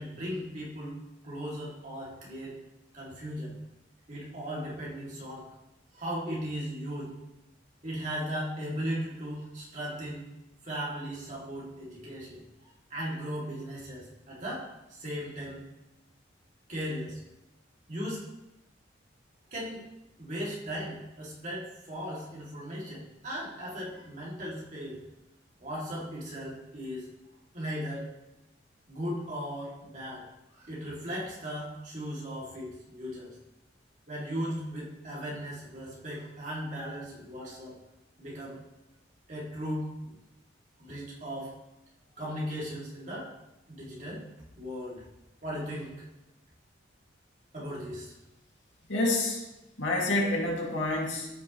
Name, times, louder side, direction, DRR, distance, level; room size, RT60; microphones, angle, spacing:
voice 1, 0.0-2.5 2.9-3.5 4.1-5.4 5.9-7.1 7.8-10.3 10.6-14.6 14.9-15.6 16.7-17.2 17.9-18.2 19.5-19.8 20.2-25.0 25.6-27.1 27.5-28.1 28.9-30.2 30.5-33.3 34.1-37.7 38.2-38.6 39.3-40.1 40.8-41.5 42.2-43.3 43.7-44.2 44.6-45.0 45.4-46.0 47.5-48.1, equal, 40° right, -5 dB, 2.5 m, -37 dB
voice 2, 48.9-49.4 49.8-51.3, left 2 dB, 80° left, -2 dB, 2.2 m, -28 dB
13.5 x 5.9 x 3.1 m, 0.93 s
head